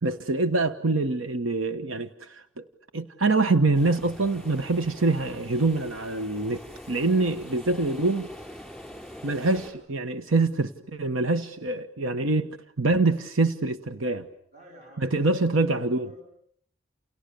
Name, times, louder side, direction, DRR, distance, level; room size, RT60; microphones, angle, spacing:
voice 1, 0.0-2.6 2.9-8.3 9.2-12.5 12.8-14.3 15.0-16.1, right 3 dB, 90° right, 9 dB, 1.2 m, -25 dB
sound 1, 3.7-9.7, equal, ahead, 4.9 m, -44 dB
voice 2, 14.5-15.4 15.7-16.2, equal, 35° right, 4 dB, 7.7 m, -51 dB
29.5 x 29.5 x 6.8 m, 0.64 s
head